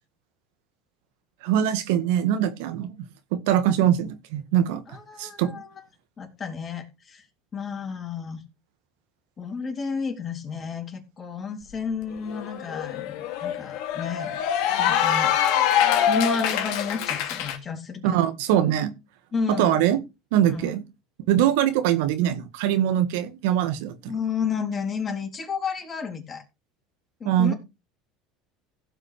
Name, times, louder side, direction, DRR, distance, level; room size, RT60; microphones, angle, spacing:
voice 1, 1.4-3.0 3.3-4.8 5.2-5.5 18.0-18.9 19.5-20.0 20.3-20.8 21.3-24.1 27.2-27.5, right 11 dB, 80° right, 1.8 m, -22 dB
voice 2, 4.9-5.7 6.2-7.3 7.5-8.4 9.4-14.4 14.8-15.3 16.1-18.2 19.3-19.8 20.4-20.7 24.1-26.4 27.2-27.5, left 5 dB, 25° left, 3.7 m, -31 dB
Cheering / Applause, 11.7-11.8 12.1-17.6, left 9 dB, 70° left, 2.7 m, -24 dB
16.0 x 6.1 x 5.0 m
supercardioid pair, 135°, 0 cm